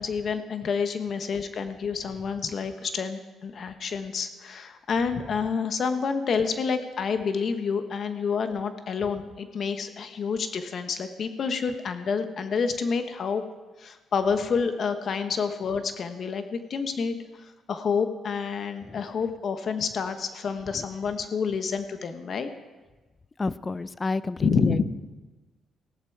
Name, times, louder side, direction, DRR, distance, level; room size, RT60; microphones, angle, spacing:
voice 1, 0.0-13.4 13.8-17.2 17.7-22.5 24.4-24.8, left 5 dB, 55° left, 8 dB, 1.1 m, -28 dB
voice 2, 23.4-24.8, left 3 dB, 30° left, 17 dB, 0.5 m, -30 dB
16.0 x 11.5 x 4.7 m, 1.2 s
cardioid pair, 90°, 0 cm